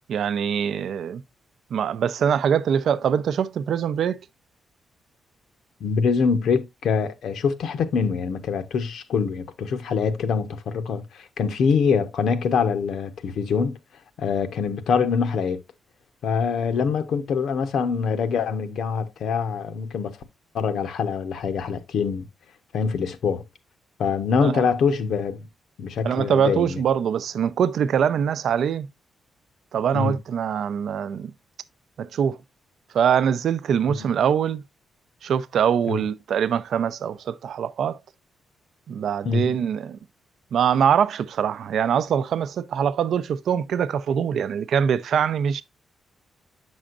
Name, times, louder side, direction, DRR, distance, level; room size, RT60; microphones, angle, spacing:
voice 1, 0.1-1.2 1.7-4.2 24.4-24.7 26.0-28.9 29.7-31.3 32.0-32.4 32.9-34.6 35.2-38.0 38.9-40.0 40.5-45.6, right 8 dB, 65° right, 0.5 m, -23 dB
voice 2, 5.8-13.8 14.2-15.6 16.2-20.2 20.5-22.3 22.7-23.4 24.0-25.5 25.8-26.8 29.9-30.2 33.9-34.0 35.9-36.1 39.2-39.5, left 6 dB, 70° left, 0.9 m, -24 dB
8.8 x 6.2 x 2.5 m
wide cardioid pair, 170°, 0 cm